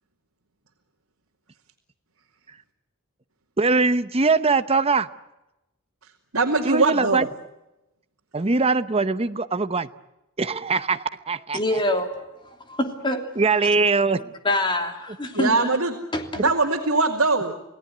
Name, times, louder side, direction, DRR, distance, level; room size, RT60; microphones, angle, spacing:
voice 1, 3.6-5.1 6.6-7.3 8.3-9.9 10.4-11.8 13.4-14.3 16.4-16.5, right 4 dB, 30° right, 12 dB, 0.9 m, -22 dB
voice 2, 6.3-7.3 15.3-15.9 16.4-17.5, right 3 dB, 85° right, 0 dB, 2.4 m, -21 dB
voice 3, 11.5-12.1 12.4-13.2 14.4-15.8 16.1-16.4, left 1 dB, 25° left, 5 dB, 3.1 m, -25 dB
27.5 x 18.0 x 9.4 m, 0.96 s
head